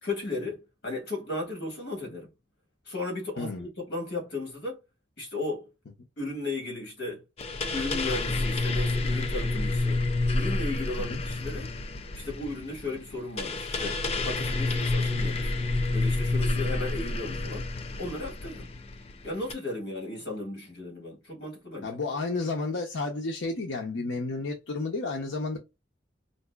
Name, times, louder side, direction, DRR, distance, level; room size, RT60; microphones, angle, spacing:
voice 1, 0.0-2.3 2.9-4.8 5.2-5.7 6.2-7.2 7.7-10.0 10.3-11.7 12.1-15.5 15.9-17.7 18.0-18.7 19.2-22.0, left 2 dB, 55° left, 1.7 m, -35 dB
voice 2, 3.4-3.7 11.0-11.2 17.3-17.4 21.8-25.6, left 3 dB, 85° left, 0.7 m, -31 dB
sound 1, 7.4-19.5, left 2 dB, 35° left, 0.4 m, -29 dB
4.1 x 2.6 x 2.3 m
head